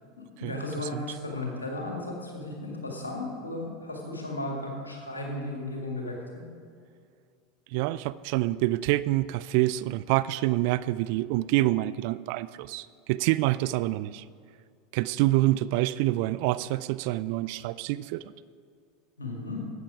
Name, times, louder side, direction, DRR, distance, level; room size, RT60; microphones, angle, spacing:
voice 1, 0.2-6.4 19.2-19.6, left 2 dB, 85° left, 0 dB, 2.1 m, -35 dB
voice 2, 7.7-14.2 14.9-18.3, right 17 dB, 55° right, 16 dB, 0.3 m, -27 dB
13.0 x 8.8 x 4.9 m, 2.3 s
figure-of-eight pair, 80°, 0 cm